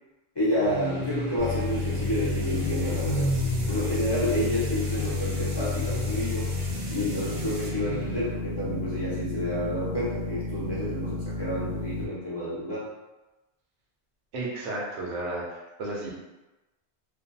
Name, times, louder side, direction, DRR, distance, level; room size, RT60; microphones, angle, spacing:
voice 1, 0.4-3.3 3.7-6.5 6.9-12.9, left 1 dB, 40° left, -9 dB, 0.3 m, -29 dB
sound 1, 0.6-8.4, right 1 dB, 10° left, 0.7 m, -35 dB
sound 2, 1.4-12.0, left 3 dB, 65° left, 0.7 m, -31 dB
sound 3, 1.4-7.7, right 2 dB, 60° right, 0.7 m, -44 dB
voice 2, 14.3-16.1, right 2 dB, 90° right, -5 dB, 1.0 m, -33 dB
2.5 x 2.2 x 2.6 m, 1.1 s
omnidirectional pair, 1.2 m